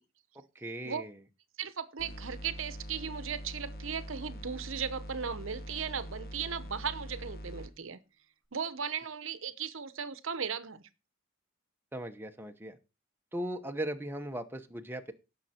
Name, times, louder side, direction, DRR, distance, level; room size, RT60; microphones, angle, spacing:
voice 1, 0.5-1.1 11.9-12.8 13.3-15.1, right 1 dB, 10° right, 0.9 m, -38 dB
voice 2, 1.6-8.0 8.5-10.8, right 7 dB, 65° right, 0.9 m, -37 dB
sound 1, 2.0-7.7, equal, 45° left, 1.3 m, -43 dB
17.0 x 6.5 x 4.3 m
head